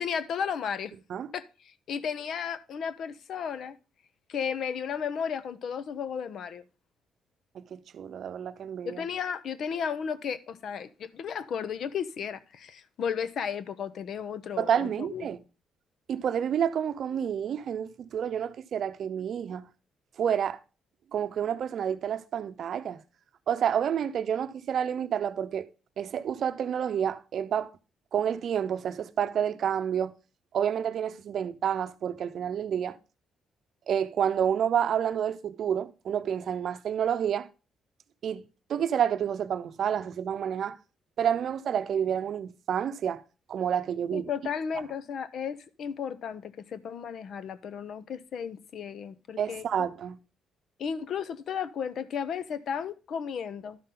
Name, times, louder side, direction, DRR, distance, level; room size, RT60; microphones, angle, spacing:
voice 1, 0.0-0.9 1.3-3.7 4.3-6.6 8.8-15.3 44.1-49.9 50.8-53.8, left 7 dB, 65° left, 0.7 m, -34 dB
voice 2, 7.5-9.0 14.6-15.4 16.1-19.7 20.2-20.6 21.1-23.0 23.5-25.7 26.0-27.7 28.1-30.1 30.5-33.0 33.9-37.5 38.2-38.4 38.7-40.8 41.2-43.2 43.5-44.3 49.4-50.2, right 8 dB, 60° right, 0.6 m, -29 dB
12.0 x 5.7 x 3.8 m
cardioid pair, 90°, 0 cm